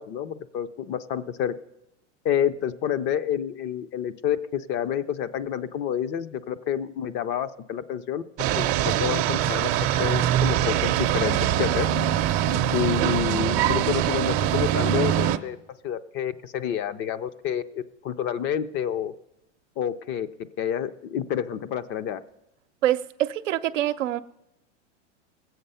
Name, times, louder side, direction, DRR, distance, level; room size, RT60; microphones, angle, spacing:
voice 1, 0.0-1.5 2.2-8.2 8.6-9.7 10.0-11.8 12.7-15.6 15.8-19.1 19.8-20.3 20.6-22.2, left 9 dB, 30° left, 0.5 m, -28 dB
sound 1, 8.4-15.4, right 11 dB, 40° right, 0.6 m, -23 dB
voice 2, 22.8-24.2, right 13 dB, 85° right, 0.7 m, -25 dB
19.5 x 7.9 x 5.5 m
hypercardioid pair, 125°, 36 cm